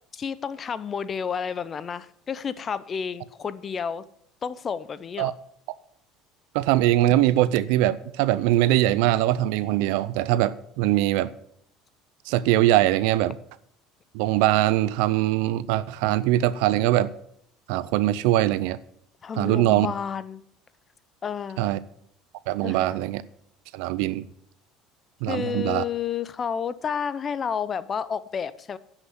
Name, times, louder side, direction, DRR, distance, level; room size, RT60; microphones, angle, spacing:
voice 1, 0.1-4.0 4.4-5.3 19.2-20.4 21.2-21.7 22.6-22.9 25.3-28.8, left 7 dB, 35° left, 16 dB, 0.6 m, -30 dB
voice 2, 6.5-11.3 12.3-13.4 14.1-17.1 17.7-18.8 19.4-19.9 21.6-21.8 22.5-23.2 23.7-24.2 25.2-25.8, right 14 dB, 80° right, 17 dB, 0.5 m, -22 dB
10.0 x 5.9 x 7.9 m, 0.71 s
supercardioid pair, 95°, 0 cm